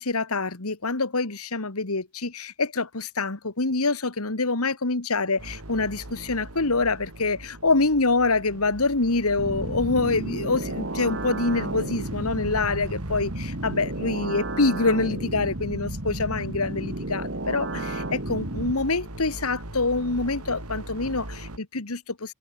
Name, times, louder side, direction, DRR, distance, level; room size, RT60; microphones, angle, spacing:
voice 1, 0.0-22.3, left 3 dB, 85° left, 2.0 m, -26 dB
sound 1, 5.4-21.6, right 1 dB, 85° right, 3.5 m, -40 dB
sound 2, 9.4-18.7, right 1 dB, 55° right, 2.5 m, -33 dB
open air
head